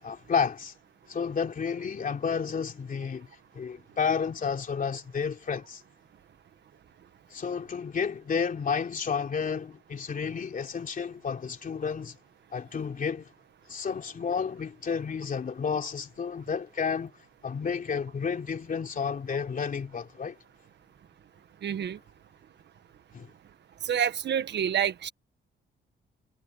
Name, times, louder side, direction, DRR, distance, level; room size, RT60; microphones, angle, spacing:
voice 1, 0.0-0.7 1.1-5.8 7.3-12.2 12.5-13.3 13.7-17.1 17.4-20.4 23.1-23.3, left 6 dB, 45° left, 3.2 m, -31 dB
voice 2, 21.6-22.0 23.8-25.1, right 9 dB, 60° right, 1.5 m, -28 dB
cardioid pair, 90°, 20 cm